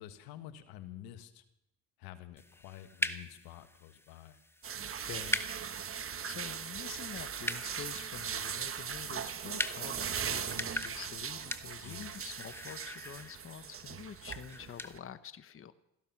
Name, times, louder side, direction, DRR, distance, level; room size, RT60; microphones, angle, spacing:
voice 1, 0.0-1.4 2.0-4.4 11.8-12.1, left 12 dB, 90° left, 10 dB, 1.4 m, -49 dB
sound 1, 2.4-14.9, left 1 dB, 5° left, 1.0 m, -42 dB
sound 2, 4.6-15.0, right 7 dB, 40° right, 1.1 m, -39 dB
voice 2, 5.0-5.5 5.8-15.7, left 8 dB, 40° left, 12 dB, 1.0 m, -47 dB
17.0 x 14.5 x 5.9 m, 0.84 s
cardioid pair, 85°, 35 cm